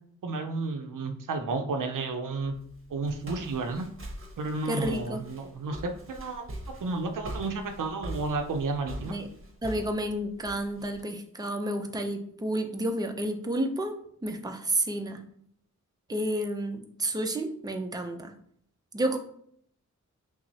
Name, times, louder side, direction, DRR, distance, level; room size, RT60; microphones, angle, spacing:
voice 1, 0.2-2.5 2.9-3.9 4.4-6.4 6.8-9.2, right 3 dB, 85° right, 5 dB, 0.5 m, -32 dB
Walk footsteps, 2.4-11.0, right 1 dB, 45° right, 0.8 m, -42 dB
voice 2, 4.6-5.2 9.1-9.3 9.6-14.0 14.2-15.2 16.1-18.3 18.9-19.2, right 1 dB, 15° right, 5 dB, 0.5 m, -30 dB
5.8 x 2.0 x 2.7 m, 0.65 s
wide cardioid pair, 65°, 31 cm